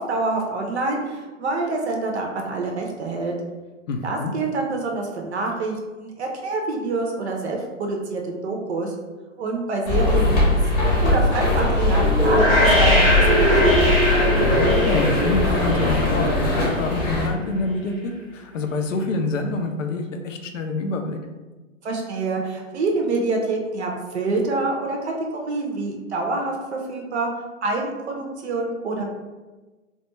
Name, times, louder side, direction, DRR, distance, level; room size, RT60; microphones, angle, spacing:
voice 1, 0.0-3.3 4.0-8.9 9.4-13.6 21.8-27.3 27.6-29.0, right 3 dB, 60° right, 1 dB, 0.6 m, -26 dB
voice 2, 3.9-4.3 14.4-16.3 16.8-21.2, left 3 dB, 75° left, 5 dB, 0.5 m, -26 dB
sound 1, 9.9-17.3, left 2 dB, 35° left, 0.7 m, -20 dB
sound 2, 12.2-17.1, equal, ahead, 0.9 m, -21 dB
2.3 x 2.2 x 2.9 m, 1.2 s
hypercardioid pair, 130°, 38 cm